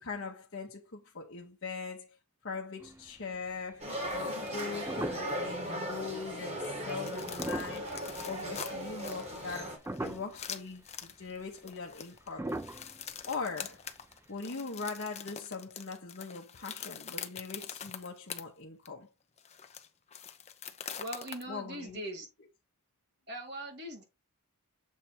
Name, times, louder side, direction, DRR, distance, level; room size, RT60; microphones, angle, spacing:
voice 1, 0.0-2.2 2.4-8.0 8.2-12.5 13.3-13.8 14.3-19.1 21.5-22.0, left 4 dB, 55° left, 1.0 m, -41 dB
sound 1, 2.8-3.5 4.0-4.1 4.5-5.6 6.0-6.2 7.2-8.6 9.1-9.5 9.8-10.5 10.9-11.0 11.2-11.4 12.3-13.9 14.1-14.2, right 1 dB, 10° right, 0.3 m, -39 dB
sound 2, 3.8-9.8, equal, 30° right, 2.2 m, -38 dB
sound 3, 6.6-18.4 18.9-19.0 19.4-21.4, left 8 dB, 30° left, 0.6 m, -44 dB
voice 2, 21.0-22.3 23.3-24.0, right 1 dB, 50° right, 2.3 m, -40 dB
7.4 x 3.4 x 4.3 m
head